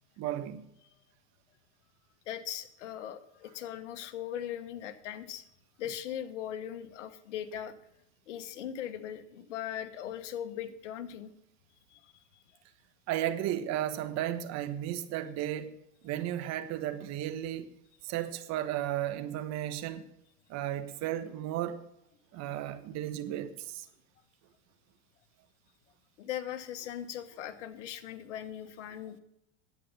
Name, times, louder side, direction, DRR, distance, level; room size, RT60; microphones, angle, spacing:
voice 1, 0.2-0.6 13.1-15.7 16.0-17.7 18.0-20.0 20.5-21.9 22.3-23.9, right 12 dB, 50° right, 1.3 m, -34 dB
voice 2, 2.3-5.4 5.8-7.8 8.3-11.3 11.9-12.2 26.2-29.2, left 10 dB, 85° left, 1.3 m, -39 dB
11.0 x 8.5 x 5.4 m
supercardioid pair, 115°, 35 cm